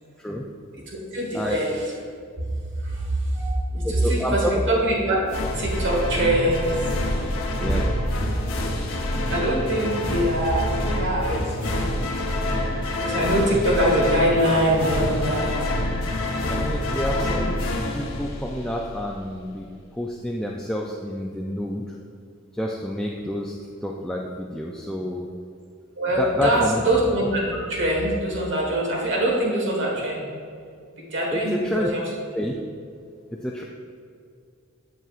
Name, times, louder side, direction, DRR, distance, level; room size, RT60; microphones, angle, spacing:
voice 1, 1.1-1.9 2.8-5.2 5.5-6.8 8.9-9.0 9.3-12.0 12.9-15.7 26.0-30.3 31.0-32.1, right 1 dB, 60° right, -2 dB, 1.4 m, -23 dB
voice 2, 3.8-4.6 7.5-7.9 16.5-17.6 17.9-19.7 19.9-21.9 22.5-23.5 23.8-25.3 26.2-26.8 31.3-31.9 32.3-32.5 33.3-33.6, left 1 dB, 5° left, -1 dB, 0.3 m, -28 dB
sound 1, 5.3-18.9, left 1 dB, 70° left, 0.8 m, -27 dB
8.1 x 7.3 x 2.4 m, 2.3 s
head